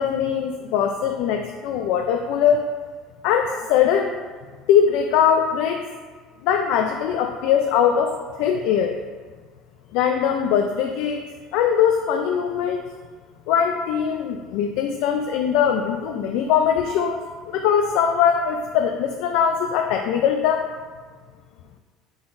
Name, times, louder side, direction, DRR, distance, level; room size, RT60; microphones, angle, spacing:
voice 1, 0.0-2.6 3.2-4.2 4.7-5.8 6.4-9.0 9.9-11.2 11.5-12.8 13.5-17.2 17.5-20.7, left 8 dB, 65° left, 4 dB, 0.4 m, -21 dB
9.6 x 3.8 x 2.6 m, 1.5 s
cardioid pair, 170°, 0 cm